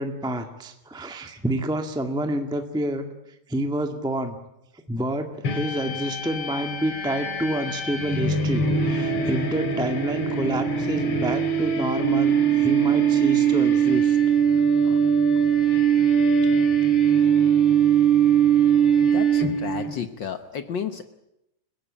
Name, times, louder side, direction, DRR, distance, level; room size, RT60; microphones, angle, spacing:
voice 1, 0.0-3.1 3.5-4.4 4.9-14.2 14.8-15.0, right 1 dB, ahead, 5 dB, 1.2 m, -28 dB
sound 1, 5.4-19.9, right 7 dB, 50° left, 2.9 m, -21 dB
voice 2, 19.0-21.1, left 7 dB, 70° left, 9 dB, 1.1 m, -32 dB
30.0 x 16.0 x 8.7 m, 0.85 s
omnidirectional pair, 3.4 m